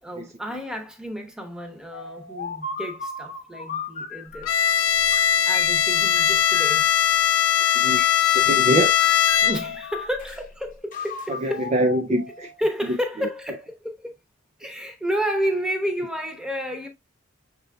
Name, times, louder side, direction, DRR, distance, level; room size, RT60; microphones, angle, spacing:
voice 1, 0.0-4.7 5.4-6.9 9.4-11.7 12.1-14.1 14.6-16.9, equal, 5° right, 0.8 m, -31 dB
sound 1, 1.9-4.7 5.1-6.9 7.6-8.7 9.0-10.4 10.9-12.7, left 4 dB, 40° left, 0.9 m, -37 dB
Bowed string instrument, 4.5-9.9, left 9 dB, 85° left, 0.5 m, -20 dB
voice 2, 7.8-8.9 11.4-12.2 12.9-13.0, right 1 dB, 30° right, 0.3 m, -24 dB
6.5 x 3.6 x 2.2 m
head